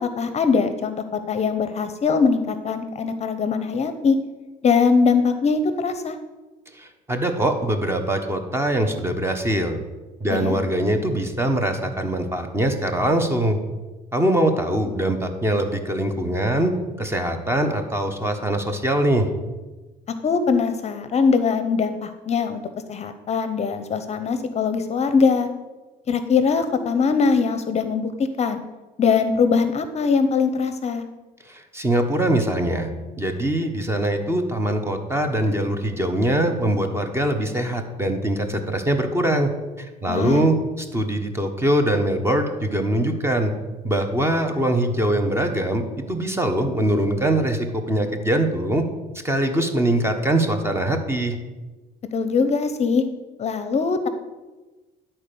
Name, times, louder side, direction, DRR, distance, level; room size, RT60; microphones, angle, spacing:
voice 1, 0.0-4.2 4.6-6.2 10.3-10.6 20.2-22.6 22.9-25.5 26.1-28.1 28.4-28.6 29.0-31.0 40.1-40.4 52.1-53.0 53.4-54.1, left 5 dB, 40° left, 10 dB, 0.7 m, -21 dB
voice 2, 6.7-9.8 10.2-13.6 14.1-16.7 17.0-19.3 31.4-32.9 33.2-39.5 39.8-43.5 43.8-48.8 49.2-51.4, right 1 dB, 15° right, 6 dB, 1.2 m, -22 dB
11.0 x 4.4 x 6.8 m, 1.2 s
cardioid pair, 110°, 17 cm